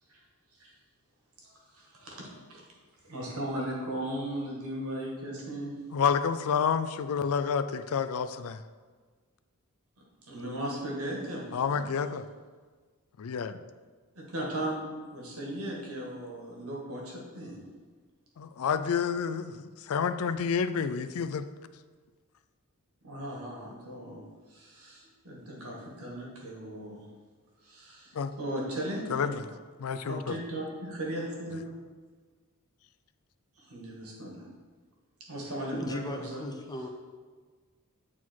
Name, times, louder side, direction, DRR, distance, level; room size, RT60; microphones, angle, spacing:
voice 1, 1.4-2.6 3.0-5.8 10.3-11.4 11.7-11.9 14.2-17.6 23.0-27.0 27.6-29.3 30.0-31.7 33.6-34.5 35.3-36.4, right 1 dB, 75° right, -2 dB, 1.9 m, -37 dB
voice 2, 5.9-8.6 11.5-12.2 13.2-13.6 18.4-21.4 28.2-28.3 29.1-29.4 29.8-30.3, left 6 dB, 70° left, 12 dB, 0.4 m, -29 dB
voice 3, 35.7-36.9, left 1 dB, 20° left, 4 dB, 0.6 m, -36 dB
8.8 x 4.2 x 4.5 m, 1.5 s
head